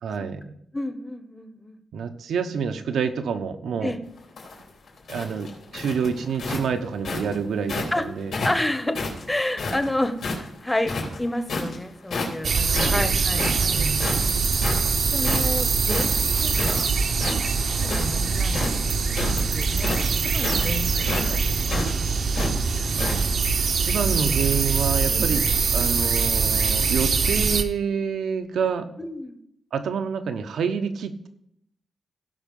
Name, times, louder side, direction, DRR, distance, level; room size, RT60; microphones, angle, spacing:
voice 1, 0.0-0.5 1.9-4.0 5.1-8.4 12.5-13.0 13.3-14.0 23.6-25.4 25.7-28.9 29.7-31.3, right 6 dB, 85° right, 8 dB, 1.0 m, -28 dB
voice 2, 0.7-1.8 3.8-4.0 7.9-8.1 8.4-14.5 15.1-16.9 17.1-18.7 19.4-22.2 25.1-25.3 29.0-29.4, left 1 dB, 10° left, 9 dB, 0.9 m, -31 dB
sound 1, 4.2-7.9 8.3-10.5 10.8-11.8 12.1-12.5 12.7-16.8 17.1-18.2 18.5-23.2, left 3 dB, 70° left, 3.4 m, -30 dB
sound 2, 12.4-27.6, right 5 dB, 60° right, 0.8 m, -23 dB
16.5 x 5.6 x 5.4 m, 0.74 s
wide cardioid pair, 130°, 0 cm